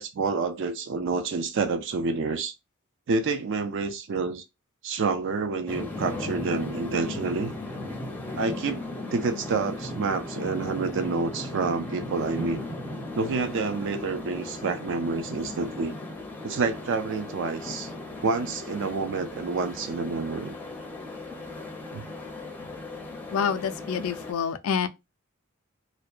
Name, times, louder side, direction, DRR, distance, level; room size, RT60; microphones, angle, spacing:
voice 1, 0.0-2.5 3.1-4.4 4.8-7.5 8.3-8.8 9.1-12.6 13.1-16.0 16.4-17.9 18.2-20.6 21.9-22.1, right 4 dB, 60° right, 0.4 m, -28 dB
sound 1, 5.7-24.3, left 2 dB, 10° left, 0.5 m, -37 dB
voice 2, 23.3-24.9, left 7 dB, 85° left, 0.4 m, -27 dB
2.6 x 2.1 x 2.3 m
head